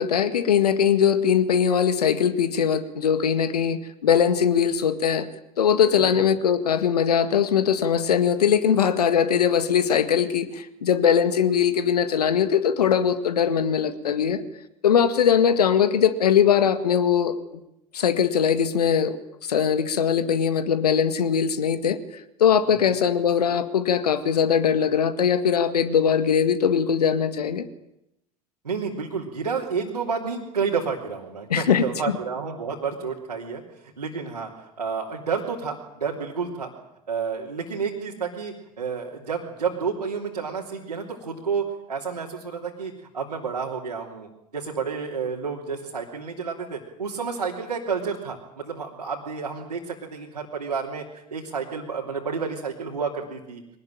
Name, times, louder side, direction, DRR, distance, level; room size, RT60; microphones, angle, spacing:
voice 1, 0.0-5.3 5.6-14.4 14.8-17.3 17.9-19.2 19.5-22.0 22.4-27.7 31.5-31.8, left 8 dB, 75° left, 12 dB, 1.8 m, -21 dB
voice 2, 28.6-36.7 37.1-53.6, right 5 dB, 85° right, -2 dB, 3.1 m, -30 dB
23.5 x 19.5 x 9.0 m, 0.86 s
figure-of-eight pair, 70°, 20 cm